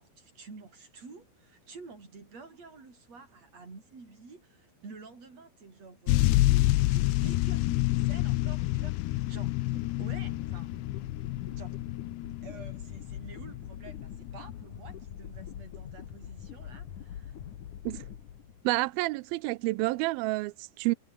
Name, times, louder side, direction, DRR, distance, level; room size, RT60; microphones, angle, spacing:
voice 1, 0.0-10.7 11.5-11.8 12.4-17.4, right 4 dB, 40° right, 6.9 m, -50 dB
sound 1, 6.1-13.6 14.3-14.4, left 18 dB, 85° left, 2.9 m, -28 dB
sound 2, 9.8-18.9, left 9 dB, 55° left, 3.0 m, -44 dB
voice 2, 18.6-20.9, right 22 dB, 85° right, 2.1 m, -29 dB
omnidirectional pair, 4.8 m